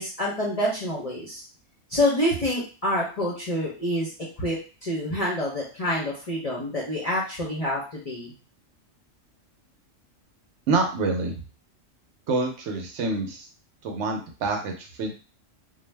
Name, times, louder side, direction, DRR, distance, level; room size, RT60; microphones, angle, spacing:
voice 1, 0.0-1.4 1.9-4.1 4.4-8.3, left 1 dB, 40° left, -5 dB, 0.6 m, -27 dB
voice 2, 10.7-11.4 12.3-13.5 13.8-15.1, right 3 dB, 70° right, 2 dB, 0.9 m, -27 dB
2.5 x 2.0 x 3.2 m, 0.35 s
omnidirectional pair, 1.3 m